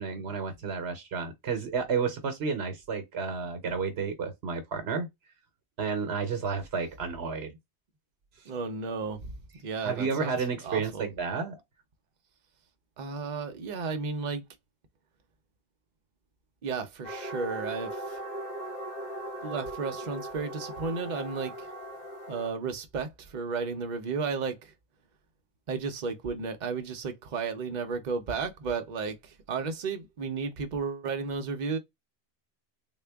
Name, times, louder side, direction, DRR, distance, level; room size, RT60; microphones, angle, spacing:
voice 1, 0.0-5.1 5.8-7.5 9.8-11.6, right 5 dB, 75° right, 1.0 m, -31 dB
voice 2, 8.5-10.3 10.6-11.1 13.0-14.4 16.6-18.2 19.4-21.7 22.3-24.7 25.7-31.8, right 5 dB, 50° right, 0.8 m, -33 dB
sound 1, 17.0-22.5, right 1 dB, 40° left, 1.1 m, -39 dB
3.6 x 2.2 x 3.4 m
omnidirectional pair, 1.1 m